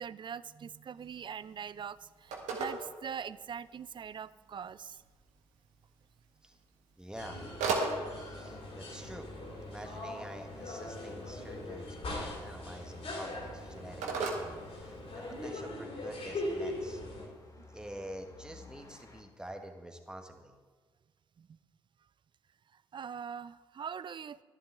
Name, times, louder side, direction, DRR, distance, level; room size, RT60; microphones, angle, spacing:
voice 1, 0.0-5.0 17.6-17.7 21.4-21.6 22.7-24.4, right 7 dB, 40° right, 18 dB, 0.4 m, -42 dB
Telephone, 1.0-15.5, right 4 dB, 75° right, 1.5 m, -41 dB
voice 2, 7.0-7.4 8.2-9.3 9.6-17.0 17.7-20.5, right 1 dB, 5° right, 4 dB, 1.5 m, -47 dB
sound 1, 7.2-17.3, left 1 dB, 55° left, 3.4 m, -41 dB
sound 2, 14.5-19.2, left 3 dB, 30° left, 1.6 m, -58 dB
11.0 x 11.0 x 3.5 m, 1.4 s
hypercardioid pair, 45°, 12 cm